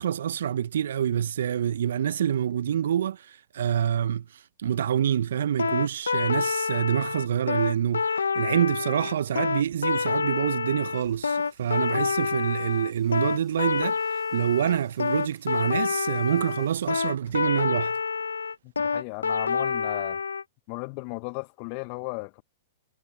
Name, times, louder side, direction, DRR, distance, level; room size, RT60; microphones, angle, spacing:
voice 1, 0.0-4.2 4.6-18.0, right 9 dB, 65° right, 0.7 m, -26 dB
sound 1, 5.6-20.4, left 5 dB, 80° left, 0.7 m, -27 dB
sound 2, 8.2-16.9, left 12 dB, 30° left, 6.0 m, -64 dB
sound 3, 9.1-11.7 12.2-12.3 13.7-14.2 14.5-15.1 16.1-16.2 16.5-18.0, left 12 dB, 60° left, 6.1 m, -61 dB
voice 2, 18.6-20.2 20.7-22.4, left 33 dB, 45° left, 0.7 m, -35 dB
hypercardioid pair, 110°, 0 cm